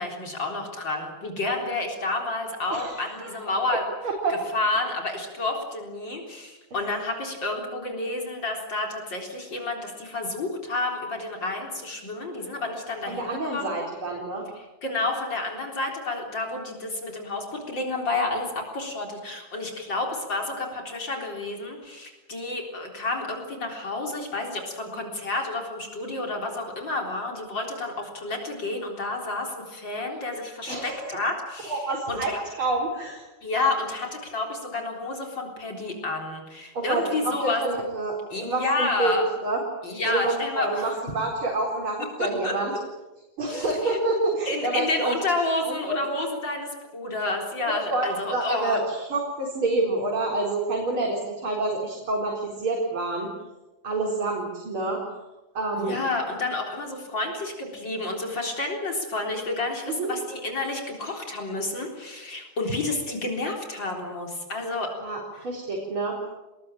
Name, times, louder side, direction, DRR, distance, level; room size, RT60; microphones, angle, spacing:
voice 1, 0.0-3.8 4.3-13.8 14.6-31.8 32.1-32.4 33.4-37.6 38.3-39.2 39.8-41.0 42.4-42.5 43.5-44.0 44.5-48.8 55.8-64.9, left 2 dB, 60° left, 1 dB, 4.6 m, -30 dB
voice 2, 2.7-3.5 4.0-4.3 13.1-14.4 30.7-31.2 31.7-33.2 36.7-39.6 40.0-42.7 43.4-45.2 45.6-46.0 47.7-53.3 53.8-55.0 55.6-56.0 59.9-60.1 65.0-66.2, right 2 dB, 90° right, -2 dB, 5.1 m, -28 dB
26.5 x 20.5 x 9.0 m, 1.1 s
omnidirectional pair, 2.2 m